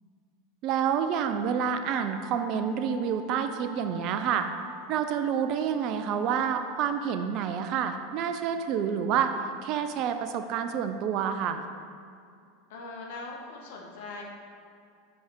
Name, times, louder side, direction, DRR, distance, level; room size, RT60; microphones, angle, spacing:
voice 1, 0.6-4.5 4.9-9.3 9.6-11.6, right 8 dB, 50° right, 8 dB, 0.4 m, -28 dB
sound 1, 1.8-6.7, right 3 dB, 65° right, 1.5 m, -47 dB
voice 2, 12.7-14.2, left 3 dB, 65° left, 0 dB, 0.8 m, -41 dB
5.4 x 4.7 x 4.5 m, 2.4 s
hypercardioid pair, 85°, 0 cm